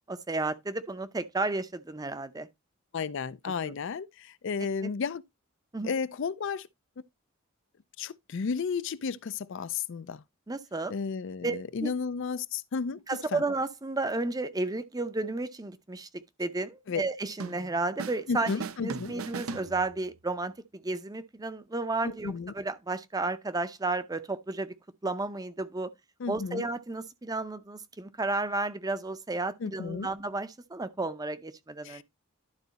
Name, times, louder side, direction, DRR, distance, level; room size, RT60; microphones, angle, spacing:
voice 1, 0.1-2.5 3.4-3.7 4.8-4.9 5.7-5.9 10.5-10.9 11.4-11.9 13.1-18.5 18.8-20.5 20.8-24.7 25.0-25.9 26.3-32.0, right 2 dB, 20° right, 0.6 m, -32 dB
voice 2, 2.9-5.2 5.8-6.7 8.0-10.2 10.9-13.0 13.3-13.4 16.9-17.0 18.3-19.1 22.0-22.5 26.2-26.6 29.6-30.1 31.8-32.0, left 5 dB, 60° left, 0.4 m, -33 dB
sound 1, 17.4-18.2 18.5-20.2, right 4 dB, 80° right, 0.7 m, -38 dB
11.5 x 4.0 x 4.0 m
head